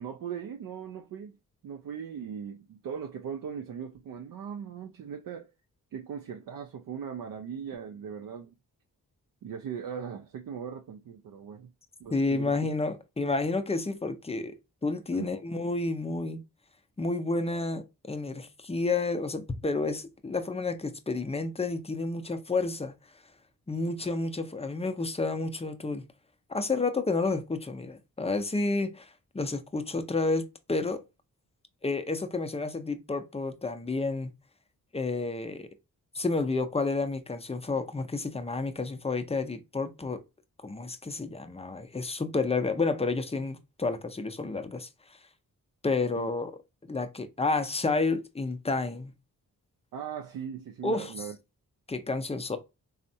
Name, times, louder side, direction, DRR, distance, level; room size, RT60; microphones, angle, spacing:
voice 1, 0.0-1.4 1.6-5.5 5.9-8.5 9.4-11.7 12.0-12.5 15.1-15.3 45.8-46.3 49.9-51.4, right 7 dB, 60° right, 0.5 m, -39 dB
voice 2, 12.1-14.6 14.8-16.4 17.0-22.9 23.7-26.0 26.5-31.0 31.8-34.3 34.9-35.7 36.1-40.2 40.6-44.9 45.8-46.6 46.9-49.1 50.8-51.1 51.9-52.6, left 3 dB, 15° left, 0.5 m, -30 dB
3.4 x 2.1 x 2.7 m
cardioid pair, 40°, 38 cm